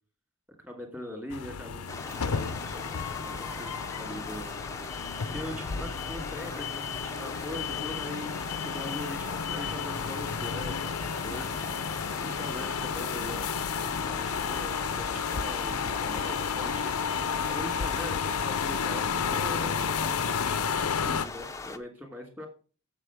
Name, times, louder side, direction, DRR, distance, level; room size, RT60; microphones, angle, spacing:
voice 1, 0.6-4.5 5.3-10.9 11.2-11.6 12.2-13.5 13.8-22.5, left 1 dB, 10° right, 2 dB, 2.7 m, -42 dB
sound 1, 1.3-21.3, left 6 dB, 90° left, 0.6 m, -32 dB
sound 2, 1.9-21.8, left 3 dB, 15° left, 0.7 m, -40 dB
8.1 x 7.6 x 6.0 m, 0.37 s
head